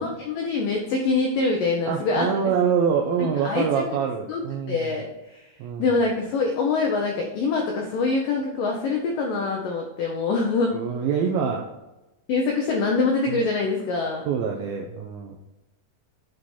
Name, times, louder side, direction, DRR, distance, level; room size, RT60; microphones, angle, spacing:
voice 1, 0.0-2.3 3.2-3.8 4.3-5.5 5.8-10.8 12.3-14.2, left 3 dB, 80° left, 1 dB, 1.9 m, -25 dB
voice 2, 1.9-4.9 5.6-5.9 10.7-11.7 13.3-13.4 14.3-15.4, right 7 dB, 85° right, 1 dB, 2.1 m, -25 dB
9.6 x 4.8 x 4.3 m, 0.99 s
omnidirectional pair, 5.1 m